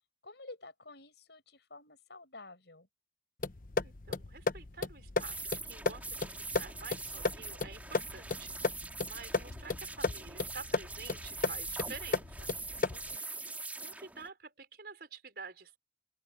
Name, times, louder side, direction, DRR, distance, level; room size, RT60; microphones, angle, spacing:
voice 1, 0.2-2.9 12.7-13.3, left 2 dB, 70° left, 5.5 m, -51 dB
sound 1, 3.4-13.2, left 3 dB, 45° left, 0.8 m, -35 dB
voice 2, 3.8-12.6 13.8-15.8, right 4 dB, 55° right, 5.6 m, -49 dB
sound 2, 5.2-14.3, right 3 dB, 10° right, 2.8 m, -43 dB
open air
head